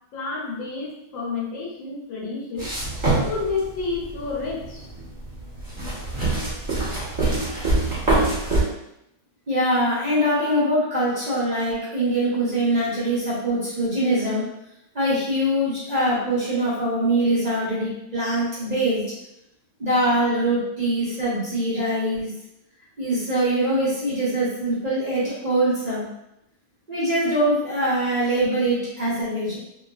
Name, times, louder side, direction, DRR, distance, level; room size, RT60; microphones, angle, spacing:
voice 1, 0.1-2.7 3.3-4.9 21.8-21.9, left 4 dB, 80° left, -4 dB, 1.4 m, -30 dB
sound 1, 2.6-8.6, right 2 dB, 25° right, 0.7 m, -24 dB
voice 2, 9.5-14.5 14.9-19.0 19.8-22.3 23.0-26.0 26.9-29.6, right 1 dB, 80° right, -10 dB, 0.3 m, -23 dB
3.1 x 2.3 x 2.3 m, 0.83 s
omnidirectional pair, 2.1 m